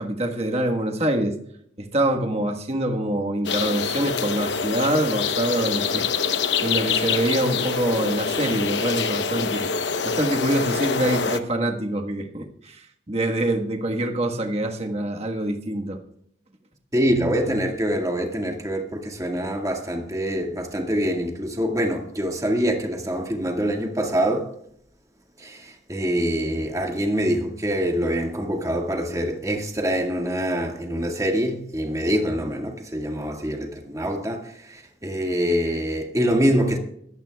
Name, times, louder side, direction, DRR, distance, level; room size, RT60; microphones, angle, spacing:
voice 1, 0.0-1.3 1.8-6.1 6.6-9.7 10.0-12.8 13.1-16.0, right 1 dB, 35° right, 1.4 m, -25 dB
sound 1, 3.4-11.4, left 5 dB, 80° left, 0.9 m, -25 dB
voice 2, 16.9-24.5 25.4-36.8, equal, 20° right, 1.8 m, -25 dB
21.0 x 14.5 x 2.3 m
head